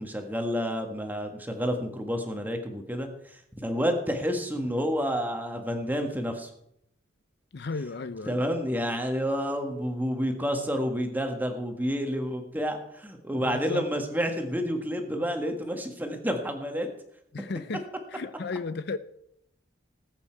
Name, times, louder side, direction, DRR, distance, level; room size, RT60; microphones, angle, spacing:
voice 1, 0.0-6.5 8.3-16.9, equal, 10° right, 1.6 m, -29 dB
voice 2, 7.5-8.4 13.4-13.9 17.3-17.8 18.1-19.0, left 3 dB, 60° left, 0.6 m, -34 dB
19.0 x 8.3 x 4.6 m
head